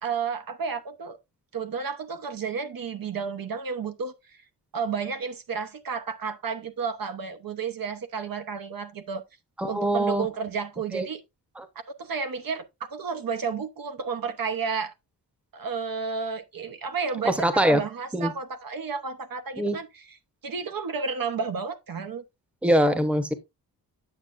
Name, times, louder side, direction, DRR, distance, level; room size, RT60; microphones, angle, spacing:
voice 1, 0.0-1.2 1.5-4.4 4.7-9.2 9.7-11.2 12.0-12.6 12.9-14.9 15.5-20.2 20.4-22.2, right 5 dB, 55° right, 0.9 m, -32 dB
voice 2, 9.6-10.3 10.9-11.0 11.6-11.7 17.2-17.8 18.1-18.3 19.6-19.8 22.6-23.3, right 1 dB, 5° right, 0.9 m, -23 dB
8.9 x 7.3 x 2.5 m
wide cardioid pair, 140°, 40 cm